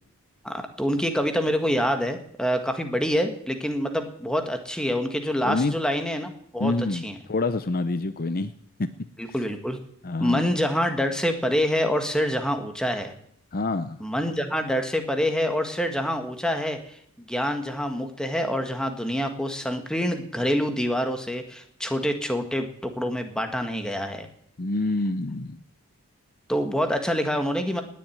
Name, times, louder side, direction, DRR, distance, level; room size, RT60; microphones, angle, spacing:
voice 1, 0.4-6.7 7.0-7.1 9.2-9.8 10.2-13.1 14.0-17.0 17.3-24.3 26.5-27.8, equal, 5° left, 6 dB, 1.7 m, -26 dB
voice 2, 5.4-5.8 6.6-8.5 8.8-8.9 9.3-9.4 10.0-10.5 13.5-14.0 24.6-25.6, left 2 dB, 40° left, 12 dB, 0.7 m, -27 dB
19.5 x 7.6 x 9.3 m, 0.66 s
head